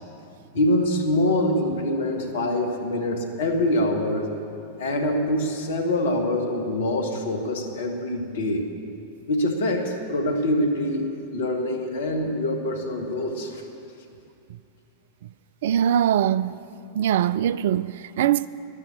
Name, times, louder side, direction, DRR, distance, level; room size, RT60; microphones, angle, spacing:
voice 1, 0.5-4.3 4.8-8.7 9.3-13.6, left 1 dB, 60° left, 1.8 m, -25 dB
voice 2, 15.6-16.6 17.0-18.5, right 10 dB, 55° right, 0.3 m, -22 dB
12.0 x 11.0 x 8.3 m
figure-of-eight pair, 90°, 0 cm